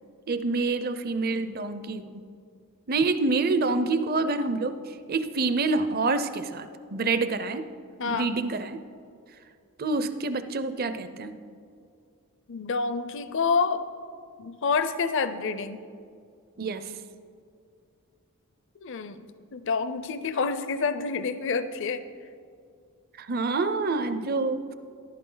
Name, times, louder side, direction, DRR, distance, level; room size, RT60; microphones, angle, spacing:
voice 1, 0.3-2.2 2.9-7.7 8.0-8.8 9.8-11.4 16.6-16.9 23.2-24.7, right 3 dB, 45° right, 11 dB, 0.6 m, -27 dB
voice 2, 12.5-13.8 14.4-15.8 18.8-19.2 19.5-22.0, left 5 dB, 55° left, 12 dB, 0.5 m, -28 dB
14.0 x 12.0 x 3.9 m, 2.3 s
head